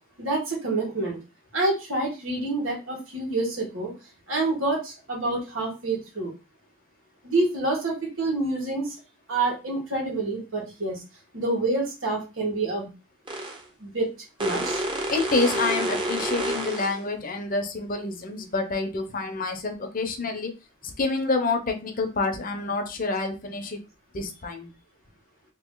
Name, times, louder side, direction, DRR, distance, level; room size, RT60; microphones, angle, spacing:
voice 1, 0.2-1.2 1.5-3.9 4.3-6.3 7.2-8.9 9.3-11.0 11.3-12.9 13.8-14.1 14.4-14.8, right 2 dB, 90° right, -1 dB, 1.6 m, -27 dB
sound 1, 13.3-13.6 14.4-17.0, right 1 dB, 25° right, 0.8 m, -28 dB
voice 2, 15.1-20.5 21.0-23.8 24.1-24.7, left 3 dB, 45° left, 6 dB, 0.7 m, -27 dB
3.0 x 2.8 x 3.8 m, 0.29 s
head